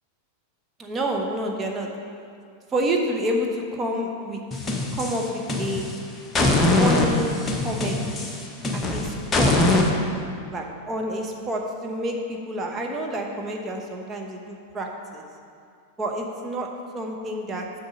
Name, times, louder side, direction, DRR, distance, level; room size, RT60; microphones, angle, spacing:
voice 1, 0.8-1.9 2.7-4.4 4.9-5.9 6.8-7.3 7.6-8.3 8.7-9.5 10.5-15.2 16.0-16.7 16.9-17.6, right 1 dB, 20° right, 1 dB, 1.0 m, -28 dB
sound 1, 4.5-5.9 6.3-9.9, left 2 dB, 15° left, 0.9 m, -22 dB
6.6 x 5.3 x 6.0 m, 2.3 s
figure-of-eight pair, 90°, 0 cm